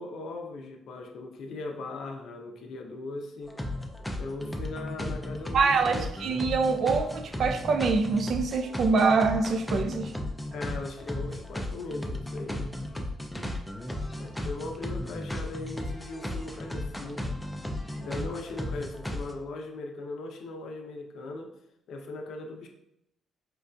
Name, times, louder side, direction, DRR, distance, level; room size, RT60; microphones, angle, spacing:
voice 1, 0.0-3.6 4.2-6.0 10.5-12.7 14.2-17.2 18.0-21.5 21.9-22.7, left 2 dB, 75° left, 0.5 m, -39 dB
sound 1, 3.5-19.3, left 1 dB, 5° left, 0.4 m, -35 dB
voice 2, 5.5-10.1 18.0-18.1, right 4 dB, 60° right, 0.3 m, -25 dB
4.4 x 2.5 x 2.2 m
cardioid pair, 90°, 0 cm